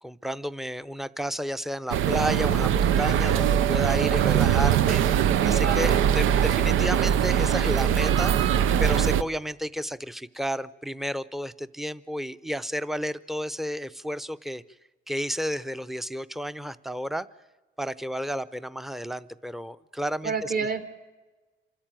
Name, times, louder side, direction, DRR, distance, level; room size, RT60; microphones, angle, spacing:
voice 1, 0.0-14.6 15.1-17.3 17.8-20.5, equal, ahead, 14 dB, 0.7 m, -32 dB
sound 1, 1.9-9.2, right 9 dB, 85° right, 0.6 m, -22 dB
voice 2, 5.4-6.4 20.2-20.8, right 5 dB, 45° right, 6 dB, 3.0 m, -30 dB
26.5 x 13.0 x 9.0 m, 1.2 s
cardioid pair, 90°, 20 cm